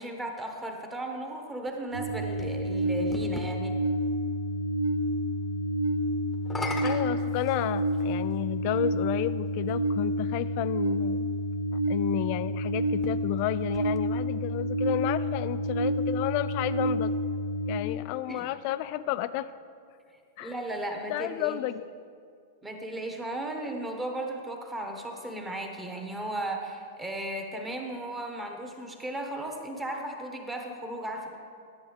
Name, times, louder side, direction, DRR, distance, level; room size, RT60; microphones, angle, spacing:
voice 1, 0.0-3.8 18.3-18.5 20.4-21.6 22.6-31.4, right 1 dB, 10° right, 3 dB, 1.2 m, -35 dB
sound 1, 1.7-3.5 6.3-8.1 9.1-9.2 12.9-14.4, left 3 dB, 10° left, 0.9 m, -40 dB
sound 2, 1.9-17.8, equal, 70° right, 0.9 m, -29 dB
voice 2, 6.8-11.3 11.7-17.1 17.7-19.5 20.4-20.6 21.1-21.8, left 15 dB, 45° left, 15 dB, 0.3 m, -32 dB
11.0 x 7.6 x 3.5 m, 2.2 s
figure-of-eight pair, 95°, 0 cm